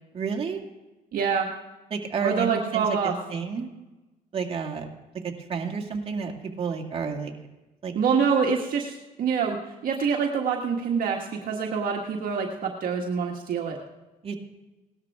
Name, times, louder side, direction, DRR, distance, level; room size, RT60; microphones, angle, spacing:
voice 1, 0.1-0.6 1.9-3.7 4.3-4.9 5.2-7.3 7.8-7.9 14.2-14.4, right 5 dB, 35° right, 1 dB, 2.2 m, -30 dB
voice 2, 1.1-1.5 2.2-3.1 7.9-13.8, right 6 dB, 55° right, 1 dB, 1.5 m, -26 dB
18.0 x 12.5 x 3.6 m, 1.1 s
cardioid pair, 110°, 17 cm